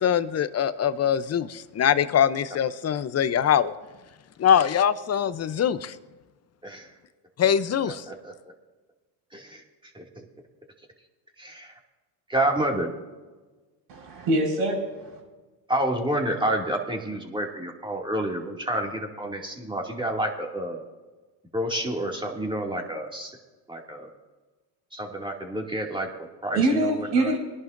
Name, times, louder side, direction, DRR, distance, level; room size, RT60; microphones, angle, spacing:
voice 1, 0.0-3.7 4.4-6.0 7.4-8.0, left 8 dB, 30° left, 14 dB, 0.7 m, -23 dB
voice 2, 7.8-8.3 9.3-10.3 11.4-11.7 12.3-12.9 15.7-20.8 21.5-23.4 23.7-24.1 24.9-27.3, right 1 dB, 10° right, 1 dB, 2.4 m, -29 dB
voice 3, 13.9-15.1 26.5-27.4, right 2 dB, 60° right, 0 dB, 5.0 m, -24 dB
22.0 x 11.0 x 2.6 m, 1.3 s
supercardioid pair, 80°, 47 cm